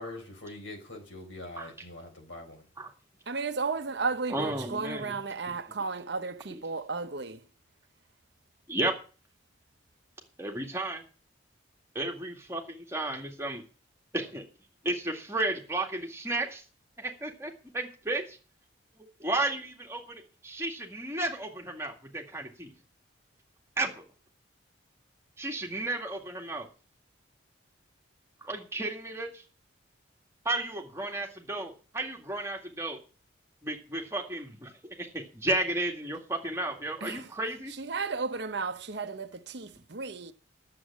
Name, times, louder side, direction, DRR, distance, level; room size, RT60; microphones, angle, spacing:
voice 1, 0.0-2.6, left 2 dB, 75° left, 4.4 m, -43 dB
voice 2, 3.3-7.4 37.0-37.3 37.7-40.3, right 4 dB, 60° right, 0.9 m, -34 dB
voice 3, 4.3-5.1 6.5-6.6 8.7-8.9 10.4-11.0 11.9-13.6 14.1-14.4 14.8-16.6 17.0-18.4 19.2-22.7 23.8-24.0 25.4-26.7 28.4-29.3 30.5-33.0 33.6-34.7 35.0-37.7, right 2 dB, 15° right, 2.1 m, -33 dB
11.5 x 7.6 x 7.3 m
head